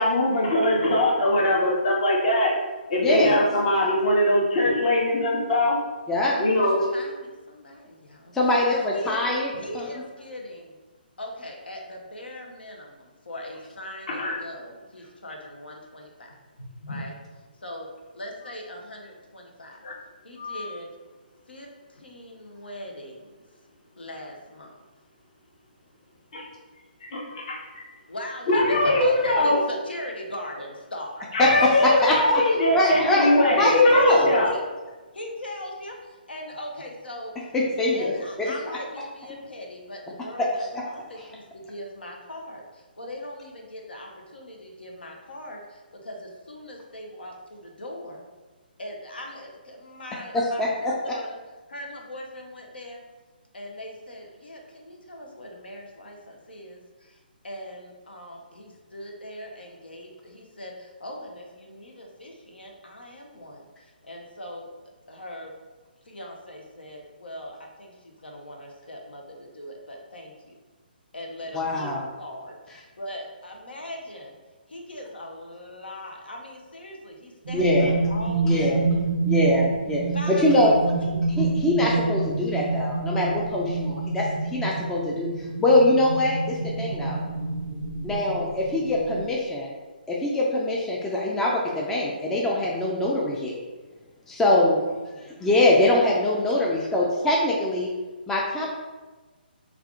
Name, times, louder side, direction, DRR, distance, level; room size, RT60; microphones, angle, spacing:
voice 1, 0.0-2.5 2.9-5.8 6.4-6.8 14.1-14.4 16.8-17.0 19.8-19.9 20.4-20.7 26.3-26.4 27.0-27.8 28.5-29.6 31.3-34.5, left 1 dB, 45° left, -3 dB, 1.0 m, -22 dB
voice 2, 3.0-3.4 6.1-6.4 8.3-10.0 31.4-31.5 31.8-32.2 32.7-33.3 33.6-34.3 37.5-38.1 38.4-38.8 40.4-40.8 41.2-41.3 50.3-50.9 71.5-72.1 72.7-72.8 77.5-77.9 78.4-78.8 79.2-80.0 80.3-80.7 81.4-84.2 84.5-85.3 85.6-87.2 88.0-89.7 90.1-93.6 94.3-94.8 95.2-97.9 98.3-98.7, left 1 dB, 5° left, -4 dB, 0.3 m, -23 dB
voice 3, 6.3-8.3 8.7-9.2 9.5-10.7 11.2-16.3 16.9-17.1 17.6-17.9 18.1-19.8 20.2-20.9 21.5-21.7 22.0-23.1 24.0-24.8 28.1-31.2 33.6-34.6 35.1-36.0 36.3-37.3 37.9-42.6 43.0-45.6 46.0-48.2 48.8-51.4 51.7-53.0 53.5-56.8 57.4-63.6 64.0-64.7 65.1-65.5 66.1-67.9 68.2-70.5 71.1-71.9 72.2-72.5 73.0-74.4 74.7-78.8 80.1-80.7 81.0-81.1 94.8-95.3, left 1 dB, 75° left, 1 dB, 0.7 m, -39 dB
sound 1, 77.5-89.3, right 3 dB, 55° right, 0.4 m, -28 dB
3.4 x 2.4 x 3.6 m, 1.2 s
figure-of-eight pair, 140°, 5 cm